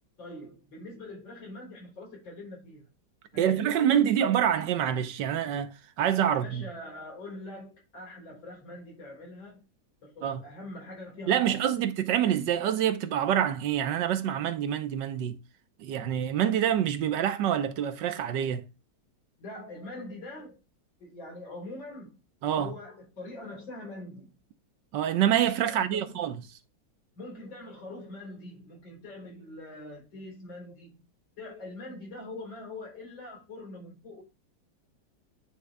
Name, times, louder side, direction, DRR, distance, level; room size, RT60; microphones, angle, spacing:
voice 1, 0.2-2.9 3.3-4.2 6.3-9.6 10.0-11.8 19.4-20.6 21.0-22.2 22.6-24.3 25.7-26.2 27.2-31.0 31.4-34.2, left 2 dB, 80° left, 4.2 m, -43 dB
voice 2, 3.3-6.7 10.2-10.4 11.3-15.4 15.8-18.6 22.4-22.7 24.9-26.4, right 10 dB, 75° right, 1.4 m, -26 dB
9.6 x 3.7 x 3.3 m
omnidirectional pair, 2.0 m